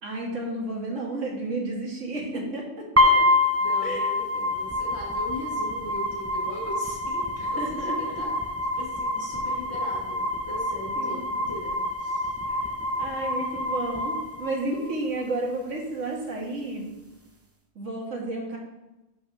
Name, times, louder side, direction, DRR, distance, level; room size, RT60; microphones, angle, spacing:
voice 1, 0.0-3.3 3.8-4.1 7.6-7.9 11.0-11.2 13.0-16.8 17.8-18.6, right 2 dB, 90° right, -1 dB, 1.9 m, -32 dB
sound 1, 3.0-15.0, left 2 dB, 15° right, 0.6 m, -27 dB
voice 2, 3.6-12.3, left 1 dB, 60° left, -4 dB, 2.5 m, -39 dB
6.1 x 5.8 x 5.5 m, 1.0 s
omnidirectional pair, 1.2 m